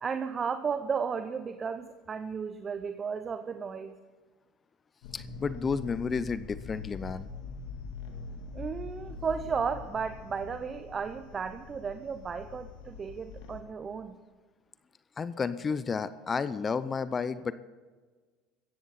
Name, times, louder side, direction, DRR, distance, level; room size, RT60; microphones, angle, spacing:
voice 1, 0.0-3.9 8.5-14.2, right 6 dB, 35° right, 10 dB, 0.8 m, -34 dB
sound 1, 5.0-13.6, left 4 dB, 70° left, 2.0 m, -43 dB
voice 2, 5.1-7.3 15.2-17.5, left 5 dB, 30° left, 15 dB, 0.6 m, -31 dB
17.0 x 14.0 x 4.3 m, 1.4 s
hypercardioid pair, 80°, 0 cm